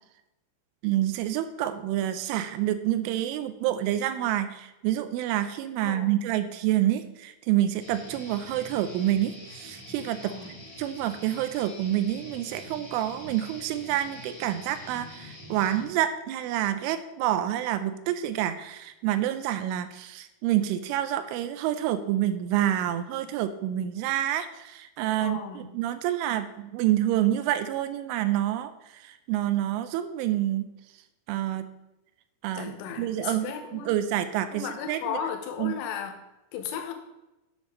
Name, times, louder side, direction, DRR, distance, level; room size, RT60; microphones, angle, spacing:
voice 1, 0.8-30.7 31.3-31.7 32.4-35.2 35.6-35.7, right 12 dB, 85° right, 11 dB, 3.0 m, -28 dB
voice 2, 5.8-6.2 10.2-10.5 25.2-25.7 32.5-33.9 34.5-36.1 36.5-36.9, left 8 dB, 85° left, 5 dB, 3.6 m, -35 dB
Guitar, 7.8-15.8, left 1 dB, 30° left, 0.8 m, -45 dB
10.5 x 7.2 x 3.8 m, 0.97 s
omnidirectional pair, 5.7 m